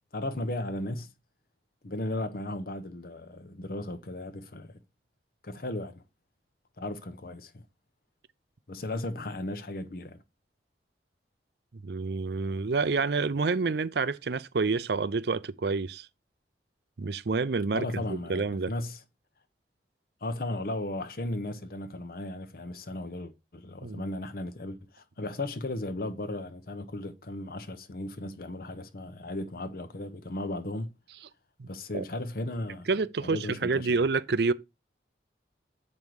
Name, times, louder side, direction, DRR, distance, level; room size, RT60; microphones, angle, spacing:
voice 1, 0.1-1.1 1.8-4.7 5.4-6.0 6.8-7.6 8.7-10.2 17.7-19.0 20.2-30.9 31.7-32.9 33.2-33.9, left 1 dB, 55° left, 0.8 m, -36 dB
voice 2, 11.8-16.1 17.0-17.9 18.3-18.7 23.8-24.1 31.6-31.7 31.9-32.0 32.9-34.5, right 4 dB, 65° right, 0.5 m, -28 dB
7.7 x 5.4 x 4.7 m
head